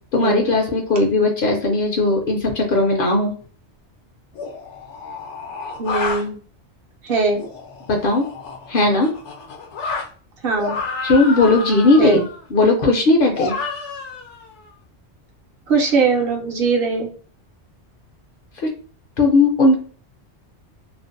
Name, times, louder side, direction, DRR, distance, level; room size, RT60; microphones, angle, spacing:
voice 1, 0.1-3.3 7.9-8.2 8.7-9.1 11.0-12.2 12.5-13.5 19.2-19.8, left 2 dB, 60° left, 2 dB, 0.6 m, -17 dB
sound 1, 3.4-3.5 4.3-6.2 7.4-10.1 10.6-12.4 13.3-14.6, left 4 dB, 80° left, 1.0 m, -30 dB
voice 2, 5.8-6.4 7.0-7.4 10.4-10.8 12.0-12.2 15.7-17.1, right 4 dB, 65° right, 1 dB, 0.7 m, -20 dB
2.5 x 2.0 x 2.5 m, 0.42 s
omnidirectional pair, 1.2 m